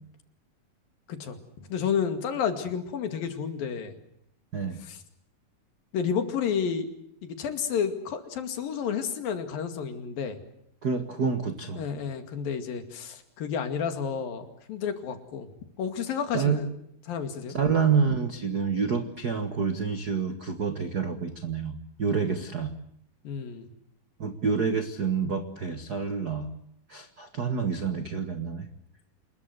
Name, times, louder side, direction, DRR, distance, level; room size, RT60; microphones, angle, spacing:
voice 1, 1.1-3.9 4.8-5.0 5.9-6.9 7.2-10.4 11.8-15.5 15.8-16.7 17.1-17.6 22.1-22.3 23.2-23.7, left 7 dB, 70° left, 8 dB, 4.0 m, -31 dB
voice 2, 10.8-11.8 16.3-16.6 17.5-22.7 24.2-26.5 26.9-28.7, right 5 dB, 70° right, 9 dB, 0.9 m, -28 dB
28.0 x 21.5 x 8.0 m, 0.72 s
omnidirectional pair, 4.2 m